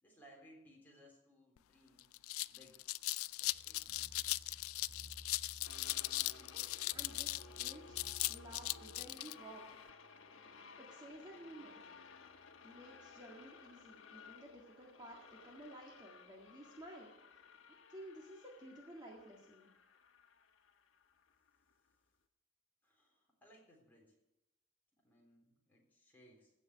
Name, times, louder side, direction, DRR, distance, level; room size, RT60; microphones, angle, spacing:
voice 1, 0.0-2.1 2.5-2.8 3.4-4.1 22.8-24.1 25.0-26.5, equal, 10° left, -3 dB, 3.6 m, -63 dB
sound 1, 1.6-1.7 2.0-9.3, left 19 dB, 90° left, 0.3 m, -39 dB
sound 2, 3.4-9.1, equal, 50° right, 3.4 m, -58 dB
sound 3, 5.6-21.9, left 5 dB, 70° left, 1.2 m, -58 dB
voice 2, 6.4-8.0 8.3-9.6 10.8-11.8 12.6-19.7, right 1 dB, 20° right, -2 dB, 1.9 m, -54 dB
16.0 x 5.5 x 9.5 m, 0.93 s
head